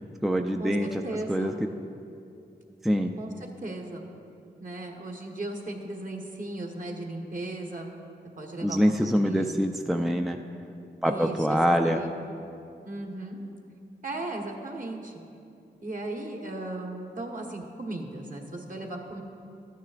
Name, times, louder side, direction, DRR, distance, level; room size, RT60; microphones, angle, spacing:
voice 1, 0.2-1.0 1.3-1.7 2.8-3.1 8.6-10.4 11.0-12.0, equal, ahead, 4 dB, 0.4 m, -25 dB
voice 2, 1.0-1.6 3.2-4.1 4.6-7.9 8.4-9.6 11.0-12.1 12.8-13.4 14.0-15.2 15.8-19.2, right 2 dB, 45° right, 1 dB, 1.4 m, -37 dB
13.0 x 9.3 x 2.5 m, 2.6 s
cardioid pair, 45°, 19 cm